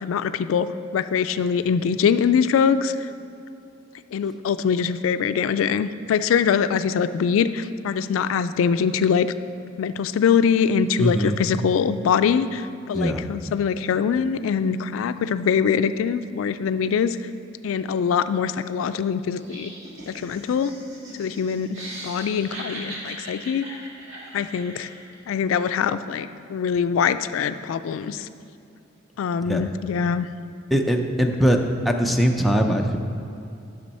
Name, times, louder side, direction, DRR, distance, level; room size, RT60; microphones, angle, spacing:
voice 1, 0.0-3.0 4.1-9.3 9.8-17.2 17.6-19.7 20.1-20.7 21.2-23.8 24.3-24.9 25.3-28.3 29.2-30.3, left 7 dB, 75° left, 13 dB, 0.3 m, -23 dB
voice 2, 11.0-11.4 12.9-13.2 29.4-29.6 30.7-33.0, equal, ahead, 2 dB, 0.5 m, -21 dB
Laughter, 19.3-25.1, right 1 dB, 80° right, 1.7 m, -39 dB
10.5 x 6.1 x 4.2 m, 2.6 s
head